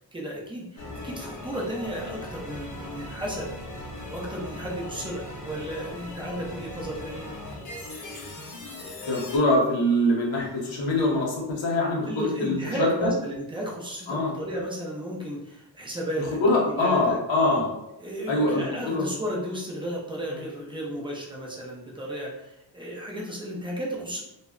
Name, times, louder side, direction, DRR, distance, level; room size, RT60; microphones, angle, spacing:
voice 1, 0.1-3.6 4.1-7.3 12.1-16.4 16.7-17.6 18.0-24.2, right 1 dB, 10° right, -4 dB, 0.4 m, -33 dB
sound 1, 0.8-9.4, left 1 dB, 40° left, 0.7 m, -39 dB
voice 2, 9.1-13.1 14.1-14.3 16.4-17.7 18.3-19.1, left 1 dB, 70° left, -3 dB, 0.8 m, -24 dB
2.1 x 2.0 x 3.6 m, 0.90 s
wide cardioid pair, 155°, 46 cm